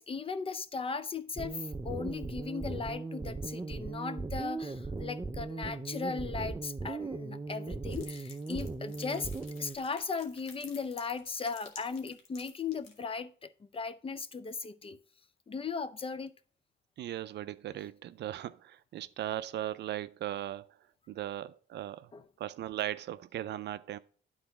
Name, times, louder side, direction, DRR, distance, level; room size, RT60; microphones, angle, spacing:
voice 1, 0.0-9.3 9.6-15.0 15.5-16.3 22.1-22.2, left 5 dB, 30° left, 0.5 m, -37 dB
sound 1, 1.4-9.8, right 3 dB, 15° right, 0.6 m, -38 dB
sound 2, 7.9-13.0, left 5 dB, 90° left, 1.4 m, -51 dB
voice 2, 17.0-20.7 21.1-22.1 22.4-24.0, right 12 dB, 60° right, 0.4 m, -38 dB
9.7 x 4.0 x 4.6 m
cardioid pair, 90°, 20 cm